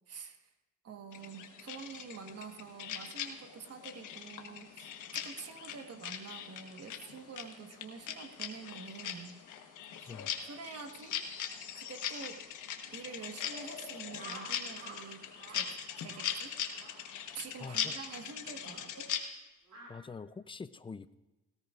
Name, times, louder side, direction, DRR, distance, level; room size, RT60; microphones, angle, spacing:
voice 1, 0.1-0.4 0.8-9.4 9.9-10.1 10.4-11.2 11.7-12.4 12.9-16.5 17.3-19.1, right 5 dB, 55° right, 6 dB, 1.4 m, -47 dB
sound 1, 1.1-19.2, left 8 dB, 75° left, 1.3 m, -41 dB
sound 2, 14.1-15.0 15.3-15.6 16.0-16.3 16.7-17.0 17.6-17.8 18.5-18.8 19.7-19.9, right 3 dB, 70° right, 4.7 m, -50 dB
voice 2, 17.6-18.0 19.9-21.2, left 5 dB, 15° left, 15 dB, 0.4 m, -45 dB
18.0 x 17.5 x 2.5 m, 1.1 s
cardioid pair, 90°, 30 cm